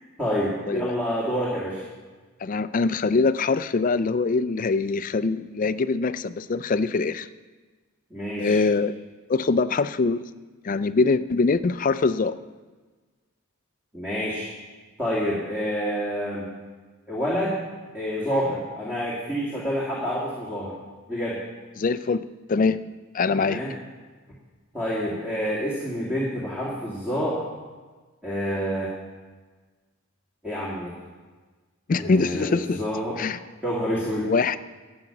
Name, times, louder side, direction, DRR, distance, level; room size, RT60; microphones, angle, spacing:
voice 1, 0.2-1.8 8.1-8.6 13.9-14.5 15.0-16.5 17.1-17.6 17.9-20.7 21.1-21.4 23.3-23.7 24.7-27.4 28.2-28.9 30.4-30.9 32.0-33.2 33.6-34.3, equal, 5° right, -7 dB, 2.1 m, -28 dB
voice 2, 2.4-7.3 8.4-9.0 9.3-10.2 10.6-12.3 21.8-22.8 23.1-23.6 31.9-32.8 33.2-33.4 34.2-34.6, left 4 dB, 35° left, 14 dB, 0.4 m, -23 dB
12.0 x 8.6 x 5.9 m, 1.4 s
head